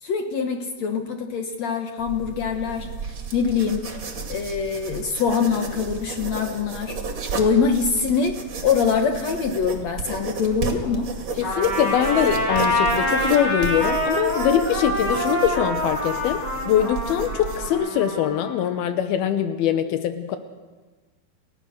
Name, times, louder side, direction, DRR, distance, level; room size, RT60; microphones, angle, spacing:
voice 1, 0.0-3.9 4.3-7.0 7.3-11.1, left 6 dB, 65° left, 5 dB, 1.8 m, -24 dB
sound 1, 2.0-17.7, right 5 dB, 35° right, 2.5 m, -33 dB
voice 2, 11.4-20.4, left 9 dB, 85° left, 9 dB, 2.8 m, -23 dB
Trumpet, 11.4-18.5, left 1 dB, 40° left, 8.9 m, -26 dB
29.5 x 16.0 x 6.6 m, 1.3 s
omnidirectional pair, 4.3 m